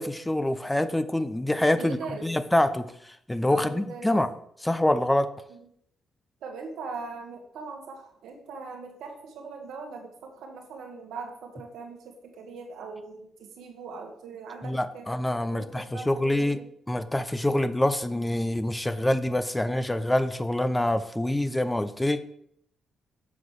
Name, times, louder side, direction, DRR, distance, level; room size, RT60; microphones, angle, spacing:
voice 1, 0.0-2.0 2.2-4.3 4.6-5.3 14.6-16.6 16.9-22.3, left 1 dB, 15° left, 12 dB, 0.6 m, -26 dB
voice 2, 1.8-2.3 3.5-4.1 5.5-5.6 6.4-15.1 15.5-16.6, right 4 dB, 80° right, 3 dB, 1.5 m, -40 dB
7.1 x 4.0 x 6.4 m, 0.70 s
supercardioid pair, 60°, 0 cm